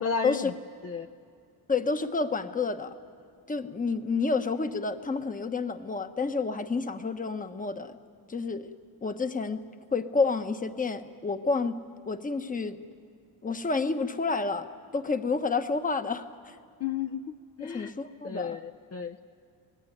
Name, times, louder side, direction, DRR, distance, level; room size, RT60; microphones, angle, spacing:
voice 1, 0.0-0.5 0.8-1.1 16.8-17.9 18.2-19.3, left 6 dB, 40° left, 4 dB, 0.7 m, -33 dB
voice 2, 1.7-2.9 3.5-8.0 8.3-8.7 9.0-9.6 9.9-11.8 12.1-12.8 13.4-16.5 17.6-18.6, left 4 dB, 20° left, 9 dB, 1.1 m, -29 dB
26.0 x 19.0 x 9.4 m, 2.4 s
cardioid pair, 135°, 37 cm